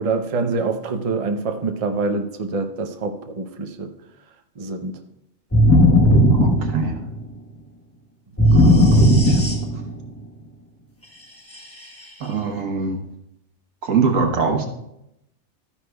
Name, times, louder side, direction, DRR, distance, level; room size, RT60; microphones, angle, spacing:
voice 1, 0.0-3.9 4.6-4.9, right 3 dB, 35° right, 6 dB, 0.6 m, -25 dB
sound 1, 5.5-7.3 8.4-10.0, equal, 10° left, 1.0 m, -15 dB
voice 2, 6.3-7.0 8.5-9.5 12.2-13.0 13.8-14.7, right 5 dB, 80° right, 4 dB, 1.5 m, -23 dB
13.0 x 9.7 x 2.3 m, 0.84 s
omnidirectional pair, 1.4 m